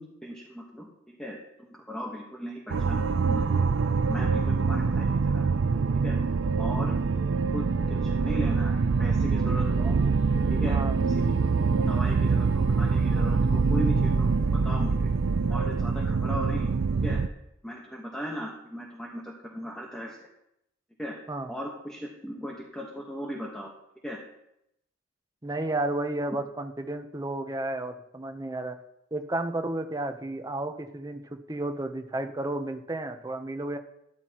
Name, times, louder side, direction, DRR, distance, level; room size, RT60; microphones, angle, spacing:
voice 1, 0.0-3.6 4.1-5.5 6.0-6.2 6.6-7.0 7.3-10.0 10.5-11.3 11.7-15.1 15.5-16.7 17.0-17.2 17.6-20.3 21.0-21.2 21.5-23.7 24.0-24.2, equal, 5° left, -2 dB, 1.2 m, -37 dB
sound 1, 2.7-17.3, right 4 dB, 65° right, 0.4 m, -25 dB
voice 2, 10.6-11.0 21.3-21.5 25.4-28.8 29.1-33.8, right 2 dB, 20° right, 7 dB, 0.7 m, -32 dB
13.0 x 12.0 x 3.0 m, 0.82 s
head